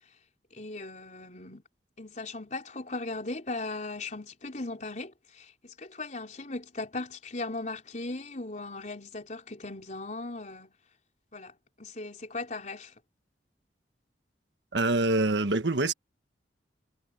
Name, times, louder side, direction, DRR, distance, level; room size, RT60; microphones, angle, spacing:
voice 1, 0.5-1.6 2.0-10.7 11.3-12.9, left 2 dB, 45° left, 4.1 m, -38 dB
voice 2, 14.7-15.9, right 2 dB, 90° right, 1.4 m, -25 dB
head